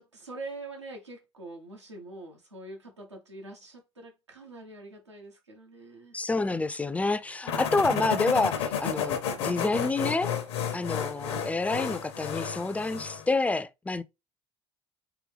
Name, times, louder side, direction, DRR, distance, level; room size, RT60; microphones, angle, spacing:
voice 1, 0.0-6.2, right 2 dB, 90° right, 1.0 m, -44 dB
voice 2, 6.1-10.3 10.7-14.0, left 3 dB, 10° left, 0.4 m, -28 dB
sound 1, 7.1-12.3, right 5 dB, 70° right, 1.9 m, -56 dB
sound 2, 7.5-13.3, left 7 dB, 70° left, 0.8 m, -32 dB
3.6 x 3.1 x 3.4 m
figure-of-eight pair, 60°, 14 cm